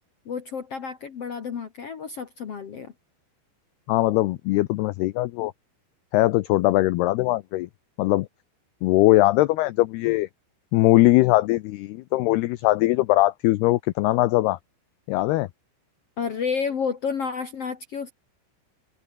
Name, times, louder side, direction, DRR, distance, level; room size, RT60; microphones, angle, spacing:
voice 1, 0.2-2.9 16.2-18.1, left 6 dB, 70° left, 1.4 m, -30 dB
voice 2, 3.9-5.5 6.1-7.7 8.0-8.3 8.8-10.3 10.7-14.6 15.1-15.5, left 18 dB, 90° left, 2.2 m, -21 dB
omnidirectional pair, 5.5 m